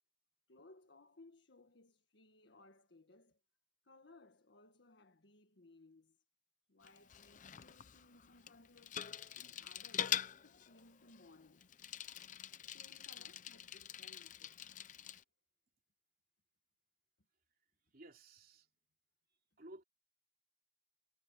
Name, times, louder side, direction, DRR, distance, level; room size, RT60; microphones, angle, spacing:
voice 1, 0.5-3.4 3.8-6.2 6.7-9.0 9.3-11.7 12.7-14.8, left 2 dB, 85° left, 1.6 m, -63 dB
Bicycle, 6.8-15.2, left 9 dB, 45° left, 0.6 m, -45 dB
voice 2, 17.8-18.7 19.3-19.8, right 1 dB, 55° right, 3.1 m, -56 dB
head